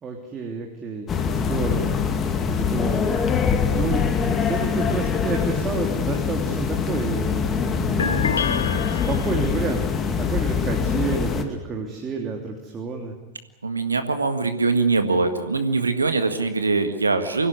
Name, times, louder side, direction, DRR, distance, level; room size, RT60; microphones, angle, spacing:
voice 1, 0.0-2.0 2.5-3.2 3.7-8.5 8.8-13.1, right 5 dB, 25° right, 1 dB, 3.3 m, -30 dB
sound 1, 1.1-11.4, left 6 dB, 25° left, 2.4 m, -24 dB
sound 2, 8.0-9.8, left 6 dB, 70° left, 1.2 m, -28 dB
voice 2, 13.6-17.5, right 3 dB, 80° right, 8 dB, 1.8 m, -22 dB
25.0 x 16.5 x 9.7 m, 1.1 s
figure-of-eight pair, 90°, 0 cm